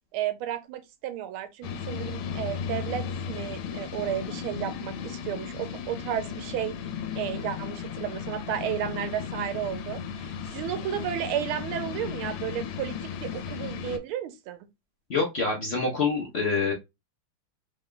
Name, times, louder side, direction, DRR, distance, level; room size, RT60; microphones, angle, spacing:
voice 1, 0.1-6.7 7.2-14.6, right 11 dB, 80° right, 1.5 m, -33 dB
sound 1, 1.6-14.0, left 7 dB, 85° left, 1.5 m, -35 dB
voice 2, 15.1-16.7, left 4 dB, 70° left, 0.6 m, -26 dB
3.6 x 2.2 x 3.7 m
omnidirectional pair, 2.4 m